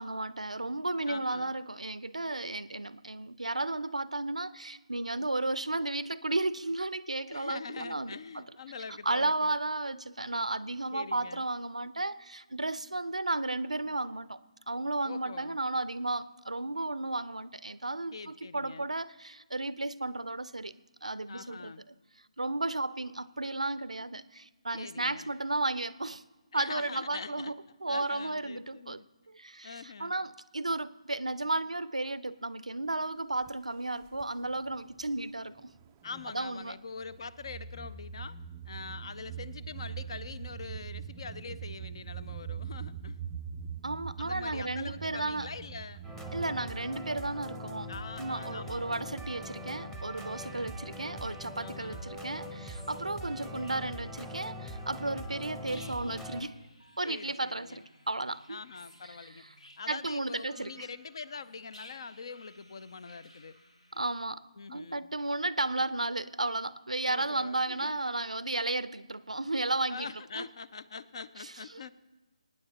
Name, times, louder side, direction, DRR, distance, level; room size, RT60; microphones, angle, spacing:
voice 1, 0.0-8.4 9.0-14.4 14.7-20.7 21.0-21.9 22.4-26.2 26.5-27.5 27.8-29.0 29.3-35.7 36.3-36.7 43.8-45.5 46.3-47.9 48.2-56.6 57.0-58.6 59.9-60.9 63.9-64.4 64.7-70.1 70.4-70.5 71.7-71.9, right 2 dB, 85° right, 17 dB, 0.5 m, -33 dB
voice 2, 1.1-1.5 7.3-9.5 10.9-11.5 15.0-15.6 18.1-18.9 21.3-21.8 24.7-25.3 26.5-29.1 29.6-30.1 36.0-38.4 38.6-43.2 44.2-46.1 47.9-49.1 51.6-52.1 57.0-57.8 58.5-59.4 59.8-63.6 64.6-65.1 67.1-68.0 69.9-71.9, left 5 dB, 50° left, 16 dB, 0.6 m, -44 dB
sound 1, 33.3-33.5 34.0-35.1 35.5-36.4 37.0-46.7, right 7 dB, 20° right, 0.4 m, -42 dB
sound 2, 46.0-56.4, equal, 5° left, 0.9 m, -42 dB
sound 3, 50.1-64.2, left 1 dB, 80° left, 2.2 m, -58 dB
24.0 x 9.6 x 2.9 m, 1.2 s
figure-of-eight pair, 150°, 4 cm